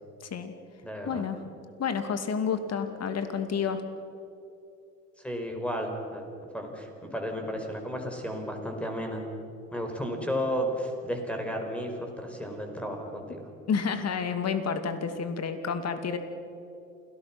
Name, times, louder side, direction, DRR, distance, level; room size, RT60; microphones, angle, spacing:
voice 1, 0.2-0.5 1.1-1.4 1.8-3.8 13.7-16.2, left 6 dB, 40° left, 9 dB, 2.5 m, -30 dB
voice 2, 0.8-1.2 5.2-6.3 6.5-9.2 9.7-13.5, equal, 5° left, 3 dB, 5.1 m, -33 dB
28.0 x 17.5 x 6.1 m, 2.8 s
hypercardioid pair, 65°, 40 cm